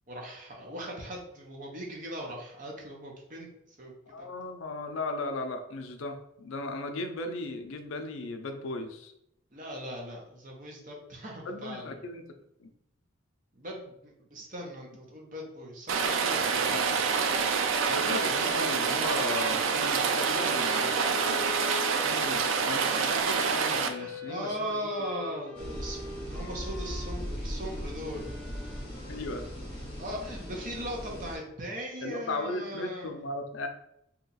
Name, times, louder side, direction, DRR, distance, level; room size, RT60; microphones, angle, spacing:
voice 1, 0.1-3.5 3.8-4.5 9.5-12.0 13.5-16.7 23.8-28.3 30.0-33.2, equal, 40° right, 0 dB, 0.7 m, -39 dB
voice 2, 4.1-9.1 11.5-12.2 12.6-12.7 16.7-17.0 17.9-20.9 21.9-24.8 29.1-29.4 32.0-33.7, left 2 dB, 70° left, 6 dB, 0.4 m, -36 dB
Rain, 15.9-23.9, right 5 dB, 65° right, 0.3 m, -27 dB
Wind instrument woodwind instrument, 16.8-30.2, left 2 dB, 5° left, 0.7 m, -44 dB
sound 1, 25.5-31.4, equal, 25° left, 1.0 m, -38 dB
2.9 x 2.3 x 3.9 m, 0.80 s
head